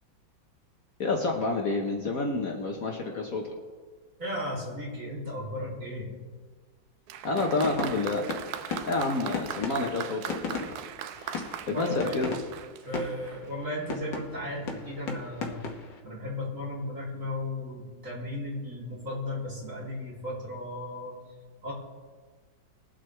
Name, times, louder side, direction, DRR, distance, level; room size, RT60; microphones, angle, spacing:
voice 1, 1.0-3.5 7.2-8.2 8.8-10.8 11.7-12.3, left 3 dB, 55° left, 1 dB, 1.4 m, -29 dB
voice 2, 4.2-6.1 11.4-12.2 12.8-15.6 16.0-21.1 21.6-21.7, left 1 dB, 40° right, -7 dB, 3.6 m, -35 dB
Applause, 7.1-13.5 14.4-14.5, right 9 dB, 70° right, 0.9 m, -40 dB
sound 1, 7.4-16.0, left 4 dB, 70° left, 1.9 m, -38 dB
21.5 x 8.0 x 3.3 m, 1.5 s
omnidirectional pair, 2.1 m